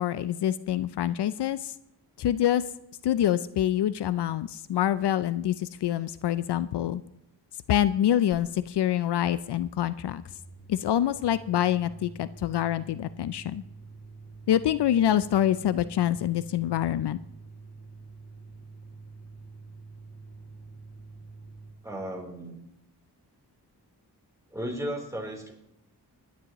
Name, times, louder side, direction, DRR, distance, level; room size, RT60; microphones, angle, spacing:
voice 1, 0.0-1.7 2.2-2.6 3.0-7.0 7.7-10.2 10.7-13.6 14.5-17.2, left 11 dB, 75° left, 15 dB, 0.5 m, -26 dB
sound 1, 8.3-8.4 8.7-21.7, right 3 dB, 35° left, 2.4 m, -48 dB
voice 2, 21.8-22.6 24.5-25.5, equal, 5° right, 0 dB, 3.5 m, -34 dB
20.0 x 10.5 x 3.0 m, 0.83 s
cardioid pair, 60°, 41 cm